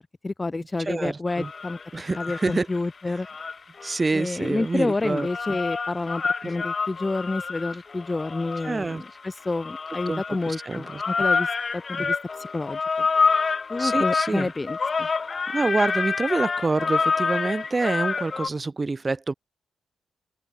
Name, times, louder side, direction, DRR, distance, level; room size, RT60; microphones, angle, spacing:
voice 1, 0.2-1.8 2.2-3.3 4.1-11.5 11.7-13.1 13.7-15.1, left 3 dB, 20° left, 1.8 m, -29 dB
voice 2, 0.9-1.5 1.9-2.7 3.8-5.6 8.6-9.0 10.1-11.0 12.0-12.1 13.8-14.5 15.5-19.3, right 3 dB, 25° right, 4.3 m, -27 dB
sound 1, 1.3-2.8 3.2-18.5, left 5 dB, 35° left, 0.8 m, -27 dB
open air
cardioid pair, 110°, 0 cm